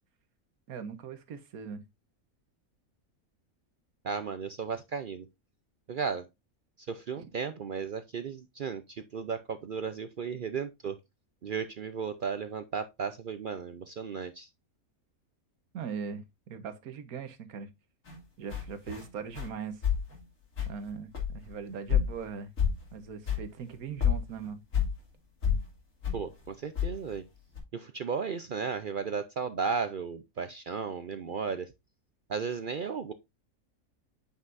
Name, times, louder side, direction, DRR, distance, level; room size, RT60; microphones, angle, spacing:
voice 1, 0.7-1.8 7.2-7.3 10.3-10.5 15.7-17.7 18.4-19.8 20.7-22.5 22.9-24.6, right 6 dB, 85° right, 1.5 m, -40 dB
voice 2, 4.0-5.3 5.9-6.2 6.8-11.0 11.4-14.5 26.1-27.2 27.7-31.7 32.3-33.1, right 6 dB, 60° right, 0.5 m, -35 dB
sound 1, 18.1-18.2 18.5-19.1 19.3-19.5 19.8-20.2 20.6-20.9 21.1-21.5 21.9-22.3 22.6-22.9 23.3-23.5 23.7-23.8 24.0-25.0 25.4-25.7 26.0-26.2 26.8-27.2 27.6-27.7, left 8 dB, 65° left, 3.1 m, -29 dB
8.8 x 5.6 x 2.5 m
omnidirectional pair, 1.5 m